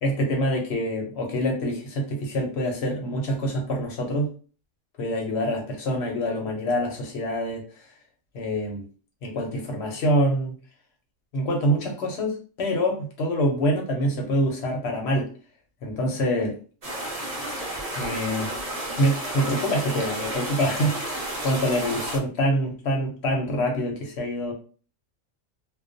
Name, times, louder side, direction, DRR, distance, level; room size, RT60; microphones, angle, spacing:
voice 1, 0.0-4.3 5.0-7.6 8.3-8.8 9.2-10.5 11.3-15.3 15.8-16.6 18.0-18.5 19.0-24.5, equal, 60° left, 1 dB, 0.8 m, -25 dB
sound 1, 16.8-22.2, right 1 dB, 40° right, 0.6 m, -32 dB
2.3 x 2.2 x 2.5 m, 0.38 s
omnidirectional pair, 1.4 m